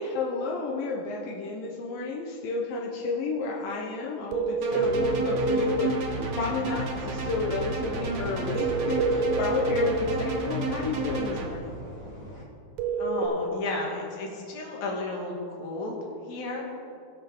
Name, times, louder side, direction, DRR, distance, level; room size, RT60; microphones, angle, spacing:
voice 1, 0.0-11.8, left 3 dB, 80° left, -2 dB, 2.6 m, -32 dB
sound 1, 4.3-5.7 8.5-10.0 12.8-13.3, right 3 dB, 70° right, 1.8 m, -26 dB
sound 2, 4.6-11.5, right 2 dB, 85° right, 1.0 m, -31 dB
sound 3, 6.3-12.4, equal, 35° left, 2.0 m, -43 dB
voice 2, 13.0-16.0 16.3-16.7, left 2 dB, 60° left, -1 dB, 2.7 m, -33 dB
18.5 x 6.6 x 3.6 m, 2.5 s
omnidirectional pair, 4.0 m